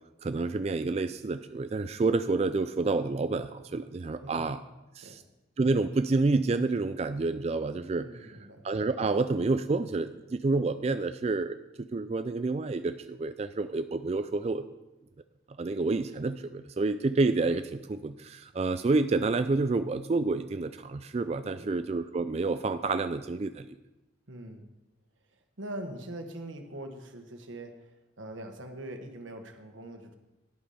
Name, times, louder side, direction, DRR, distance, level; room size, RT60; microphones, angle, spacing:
voice 1, 0.2-4.6 5.0-5.2 5.6-8.4 8.6-14.6 15.6-23.7, right 3 dB, 35° right, 10 dB, 0.3 m, -29 dB
voice 2, 4.2-4.5 5.0-5.2 7.9-8.7 21.5-21.7 24.3-24.7 25.3-30.2, right 1 dB, 90° right, 5 dB, 1.4 m, -43 dB
11.0 x 8.4 x 5.7 m, 1.0 s
head